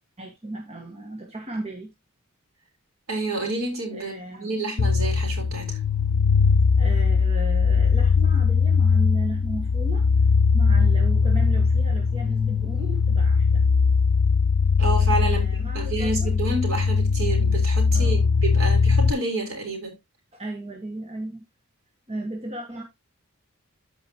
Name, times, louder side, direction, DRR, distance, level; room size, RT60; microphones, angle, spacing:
voice 1, 0.2-1.9 3.9-4.7 6.8-10.1 10.5-13.6 15.2-16.3 17.9-18.3 20.3-21.4 22.1-22.8, right 1 dB, 30° right, 1.4 m, -35 dB
voice 2, 3.1-5.8 14.8-15.4 15.7-19.9, right 2 dB, 65° right, 4.0 m, -29 dB
sound 1, 4.8-19.1, left 5 dB, 80° left, 0.6 m, -20 dB
13.5 x 5.0 x 2.8 m
head